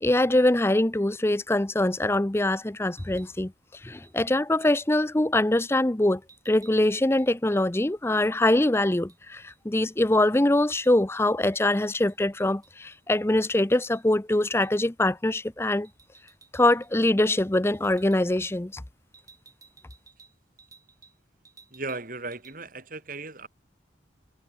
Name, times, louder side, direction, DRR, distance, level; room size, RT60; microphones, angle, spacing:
voice 1, 0.0-3.5 3.8-6.2 6.5-15.9 16.5-18.8, left 1 dB, 15° left, 0.6 m, -23 dB
sound 1, 2.9-3.4 4.0-4.2 4.6-4.9 6.3-9.2 9.5-9.6 9.9-11.2 11.5-13.5 13.9-14.1 14.6-14.8 15.8-16.9 17.2-17.5 17.7-18.2 19.1-21.2 21.4-22.0 22.3-22.6, right 5 dB, 20° right, 4.1 m, -57 dB
voice 2, 21.7-23.5, right 3 dB, 45° right, 3.8 m, -36 dB
head